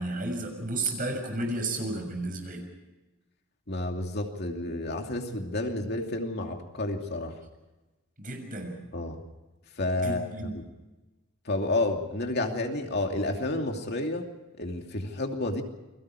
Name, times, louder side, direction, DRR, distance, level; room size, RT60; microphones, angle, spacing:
voice 1, 0.0-2.6 8.2-8.8 10.0-10.5, right 2 dB, 40° right, 4 dB, 6.8 m, -32 dB
voice 2, 3.7-7.4 8.9-9.2 9.8-10.3 10.5-10.6 11.4-14.3 14.6-15.6, left 2 dB, 50° left, 3 dB, 2.7 m, -30 dB
29.5 x 22.5 x 4.9 m, 1.1 s
head